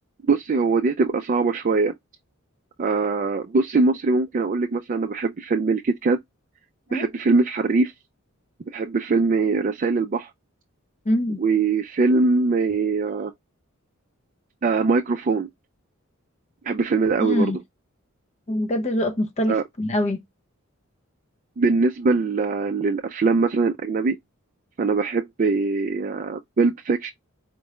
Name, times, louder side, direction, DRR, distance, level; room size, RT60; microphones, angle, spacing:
voice 1, 0.3-1.9 2.8-6.2 6.9-7.9 8.7-10.3 11.4-13.3 14.6-15.5 16.7-17.5 19.5-19.6 21.6-24.2 24.8-27.1, right 4 dB, 40° right, 0.4 m, -22 dB
voice 2, 11.1-11.4 17.2-17.6 18.5-20.2, left 1 dB, 30° left, 0.6 m, -24 dB
4.5 x 2.4 x 3.0 m
head